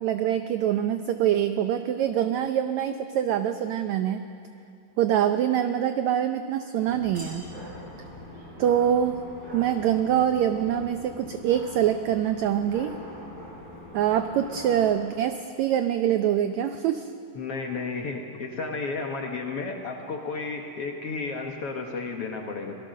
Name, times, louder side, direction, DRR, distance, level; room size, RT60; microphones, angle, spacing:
voice 1, 0.0-4.2 5.0-7.5 8.6-9.2 9.5-13.0 13.9-17.1, right 10 dB, 80° right, 8 dB, 1.6 m, -24 dB
sound 1, 6.9-15.0, equal, 30° right, 5.5 m, -43 dB
voice 2, 17.3-22.7, left 4 dB, 60° left, 2 dB, 1.7 m, -32 dB
25.5 x 18.5 x 6.4 m, 2.5 s
omnidirectional pair, 4.0 m